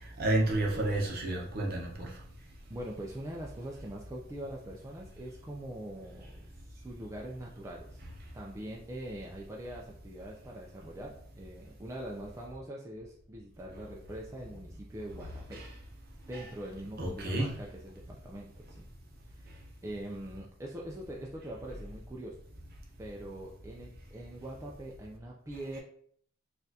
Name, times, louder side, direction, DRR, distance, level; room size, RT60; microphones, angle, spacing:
voice 1, 0.2-2.1 15.5-15.7 16.3-16.5 17.0-17.6, right 1 dB, 45° right, 0.8 m, -30 dB
voice 2, 2.7-8.0 8.3-15.6 16.3-18.9 19.3-22.4 23.0-25.8, right 1 dB, 15° right, 0.3 m, -43 dB
4.2 x 2.4 x 2.7 m
head